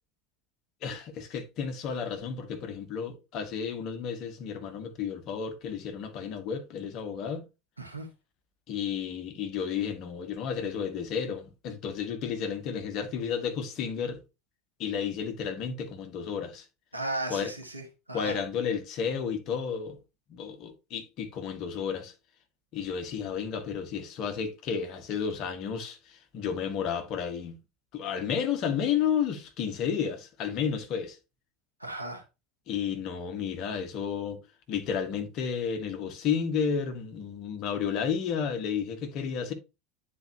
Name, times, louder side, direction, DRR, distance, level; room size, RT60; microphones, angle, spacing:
voice 1, 0.8-7.4 8.7-14.2 14.8-16.6 17.3-17.5 18.1-20.0 20.3-22.1 22.7-27.6 27.9-31.2 32.7-34.4 34.7-39.5, left 7 dB, 45° left, 1.5 m, -32 dB
voice 2, 7.8-8.1 16.9-18.4 31.8-32.2, right 2 dB, 85° right, 1.4 m, -36 dB
9.8 x 4.4 x 2.9 m
figure-of-eight pair, 75°, 0 cm